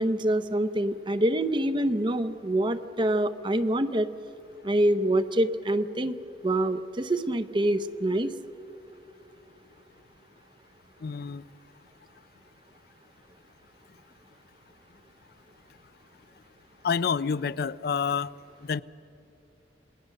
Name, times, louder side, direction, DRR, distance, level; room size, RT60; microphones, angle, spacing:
voice 1, 0.0-4.1 4.6-8.3, right 1 dB, 25° right, 0.7 m, -26 dB
voice 2, 11.0-11.4 16.8-18.3 18.6-18.8, left 6 dB, 60° left, 0.4 m, -28 dB
28.0 x 19.5 x 6.6 m
head